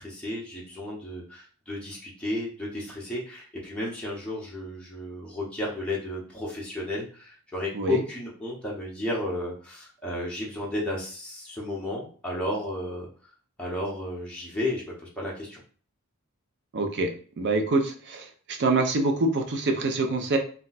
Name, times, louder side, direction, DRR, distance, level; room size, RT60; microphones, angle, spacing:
voice 1, 0.0-13.1 13.6-15.6, left 1 dB, 5° left, -5 dB, 0.7 m, -33 dB
voice 2, 16.7-17.1 17.4-18.3 18.6-20.4, right 2 dB, 50° right, 5 dB, 0.5 m, -25 dB
2.3 x 2.2 x 3.9 m, 0.41 s
head